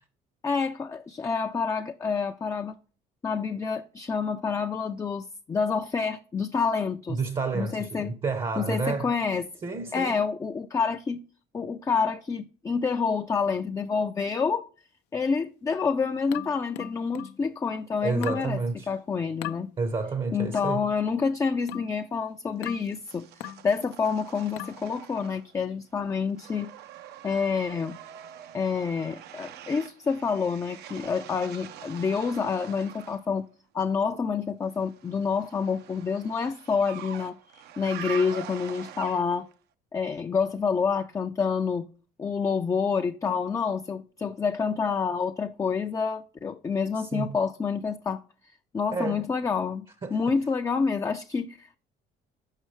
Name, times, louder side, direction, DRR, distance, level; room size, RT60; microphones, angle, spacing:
voice 1, 0.4-2.8 3.2-7.2 7.5-8.1 8.6-9.5 9.9-11.2 11.5-14.7 15.1-18.6 18.9-19.7 20.3-26.7 27.2-28.0 28.5-33.5 33.7-39.5 39.9-41.9 42.2-48.2 48.7-51.8, left 5 dB, 20° left, 0.3 m, -28 dB
voice 2, 7.1-9.1 9.6-10.2 18.0-18.9 19.8-20.9 47.0-47.4 48.9-49.2 50.0-50.2, right 4 dB, 30° right, 0.6 m, -30 dB
sound 1, 16.3-17.4 18.2-18.5 19.4-19.6 20.5-20.8 21.7-22.0 22.6-22.9 23.4-23.7 24.6-24.9, left 14 dB, 85° left, 0.4 m, -38 dB
sound 2, 22.6-25.7 26.0-33.2 34.8-39.5, right 10 dB, 75° right, 0.5 m, -44 dB
6.5 x 5.5 x 3.0 m
cardioid pair, 110°, 17 cm